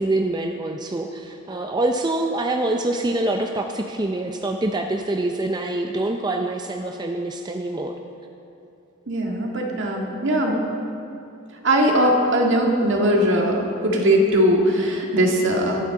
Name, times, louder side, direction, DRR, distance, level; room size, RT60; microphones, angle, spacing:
voice 1, 0.0-7.9, right 2 dB, 20° right, 3 dB, 0.5 m, -25 dB
voice 2, 9.1-10.6 11.6-15.8, equal, 60° right, 0 dB, 1.9 m, -20 dB
22.5 x 9.1 x 3.8 m, 2.6 s
head